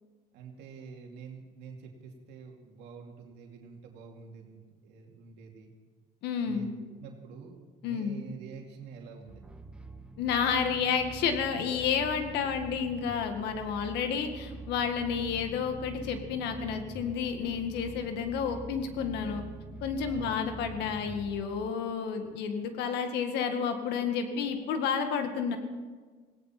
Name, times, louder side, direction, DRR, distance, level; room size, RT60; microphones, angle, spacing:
voice 1, 0.3-5.7 6.4-6.7 7.0-9.5 20.1-20.4, right 5 dB, 90° right, 1 dB, 2.4 m, -47 dB
voice 2, 6.2-6.7 7.8-8.2 10.2-19.4 19.8-25.6, left 6 dB, 85° left, 6 dB, 1.9 m, -30 dB
sound 1, 9.3-21.7, right 2 dB, 5° right, 1.3 m, -45 dB
18.0 x 17.5 x 4.4 m, 1.4 s
cardioid pair, 110°, 17 cm